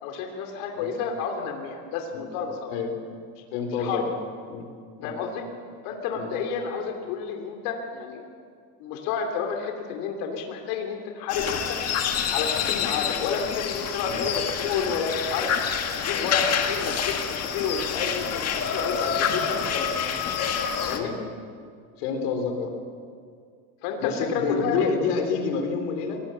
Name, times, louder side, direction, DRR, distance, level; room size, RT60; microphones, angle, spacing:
voice 1, 0.0-2.7 3.8-4.0 5.0-5.4 5.8-8.2 8.8-11.8 12.3-15.5 16.0-20.0 20.8-21.1 23.8-24.8, left 6 dB, 70° left, 3 dB, 3.1 m, -30 dB
voice 2, 3.5-4.2 4.5-4.7 5.0-5.2 6.1-6.4 14.1-14.2 20.9-21.2 22.0-22.7 24.0-26.2, left 5 dB, 85° left, 5 dB, 4.0 m, -28 dB
sound 1, 11.3-21.0, left 7 dB, 35° left, 1.9 m, -27 dB
23.0 x 18.5 x 7.5 m, 2.2 s
cardioid pair, 150°, 44 cm